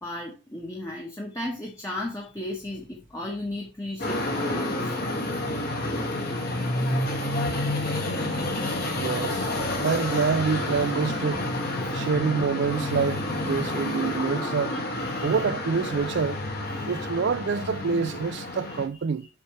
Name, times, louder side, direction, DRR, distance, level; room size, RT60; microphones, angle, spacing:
voice 1, 0.0-4.9 7.3-7.4 9.8-9.9 14.7-15.4 16.6-17.0 18.7-18.8, left 1 dB, 15° left, 1.2 m, -36 dB
sound 1, 4.0-18.9, left 1 dB, 50° left, 2.0 m, -29 dB
voice 2, 8.9-9.5 9.8-11.5 11.9-14.7 15.2-16.5 16.8-19.3, right 5 dB, 60° right, 0.4 m, -26 dB
7.1 x 5.9 x 3.1 m
head